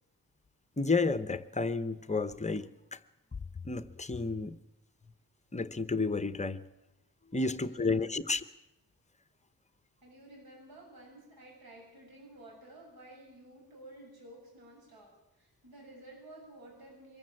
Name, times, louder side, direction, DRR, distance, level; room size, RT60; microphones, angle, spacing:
voice 1, 0.8-3.0 3.6-4.5 5.5-6.6 7.3-8.4, left 3 dB, 20° left, 13 dB, 0.8 m, -31 dB
voice 2, 7.4-8.3 10.0-17.2, right 1 dB, 75° right, -1 dB, 7.5 m, -53 dB
23.5 x 14.0 x 8.9 m, 0.90 s
wide cardioid pair, 160°, 36 cm